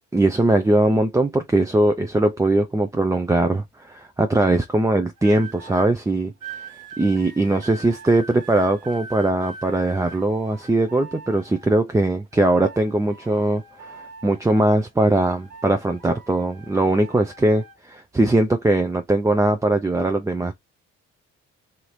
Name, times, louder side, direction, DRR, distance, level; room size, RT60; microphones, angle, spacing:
voice 1, 0.1-6.3 7.0-20.5, right 2 dB, 10° right, 0.4 m, -20 dB
sound 1, 5.2-5.9 6.4-11.9 12.3-14.9 15.2-17.8 18.5-18.8, right 4 dB, 70° right, 1.2 m, -42 dB
2.8 x 2.7 x 3.2 m
supercardioid pair, 55°, 32 cm